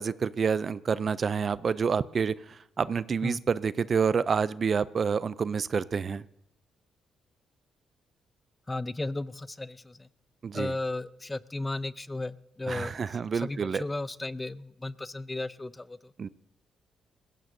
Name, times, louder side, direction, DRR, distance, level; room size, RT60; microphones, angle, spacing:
voice 1, 0.0-6.2 10.4-10.7 12.7-13.8 16.2-16.3, right 6 dB, 45° right, 17 dB, 0.4 m, -28 dB
voice 2, 8.7-10.1 10.5-12.9 13.4-16.0, left 2 dB, 15° left, 16 dB, 0.5 m, -35 dB
20.0 x 16.5 x 2.6 m, 0.81 s
cardioid pair, 90°, 0 cm